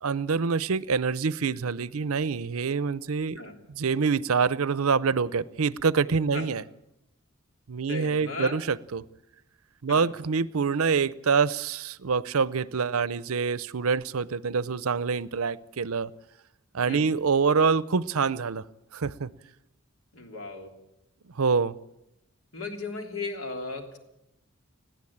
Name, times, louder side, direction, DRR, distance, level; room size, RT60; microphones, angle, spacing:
voice 1, 0.0-3.4 3.7-6.6 7.7-9.0 9.8-16.1 16.7-18.6 18.9-19.3 21.4-21.7, right 5 dB, 80° right, 19 dB, 0.6 m, -26 dB
voice 2, 7.8-8.6 9.9-10.1 16.9-17.1 20.1-20.7 22.5-24.0, left 3 dB, 70° left, 4 dB, 3.2 m, -36 dB
20.5 x 15.0 x 8.7 m, 0.87 s
head